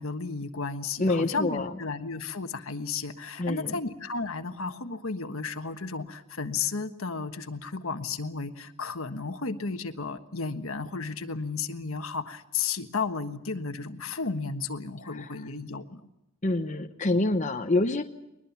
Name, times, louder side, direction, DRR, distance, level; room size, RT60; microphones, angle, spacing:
voice 1, 0.0-16.0, left 4 dB, 70° left, 8 dB, 1.4 m, -33 dB
voice 2, 1.0-1.7 3.4-3.7 15.1-15.4 16.4-18.0, left 2 dB, 35° left, 5 dB, 0.9 m, -26 dB
22.5 x 21.0 x 7.2 m, 0.90 s
head